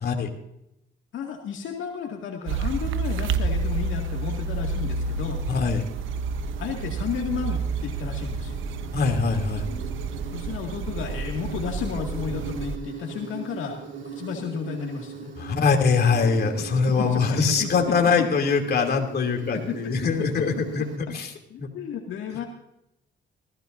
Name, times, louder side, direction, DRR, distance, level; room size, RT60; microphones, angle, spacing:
voice 1, 1.1-5.4 6.6-8.6 10.3-15.3 16.6-17.7 18.2-18.3 19.5-19.9 20.2-20.4 20.8-20.9 21.5-22.4, left 7 dB, 80° left, 1 dB, 2.2 m, -33 dB
sound 1, 2.5-12.8, right 4 dB, 85° right, 1.0 m, -29 dB
Insect, 4.3-21.0, right 7 dB, 65° right, 2.8 m, -40 dB
voice 2, 5.5-5.8 8.9-9.7 15.4-21.3 21.6-21.7, left 5 dB, 55° left, 2 dB, 2.8 m, -23 dB
19.5 x 15.0 x 2.6 m, 0.83 s
cardioid pair, 90°, 20 cm